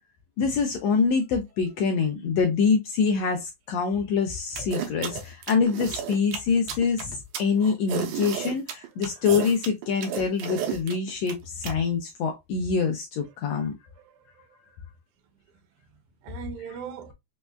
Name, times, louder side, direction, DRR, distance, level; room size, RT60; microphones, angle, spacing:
voice 1, 0.4-13.7, left 5 dB, 80° left, 1.6 m, -25 dB
sound 1, 4.6-11.7, right 9 dB, 90° right, 2.1 m, -32 dB
voice 2, 13.9-14.6 16.2-17.1, right 7 dB, 75° right, 1.3 m, -41 dB
5.1 x 2.2 x 2.3 m
omnidirectional pair, 3.4 m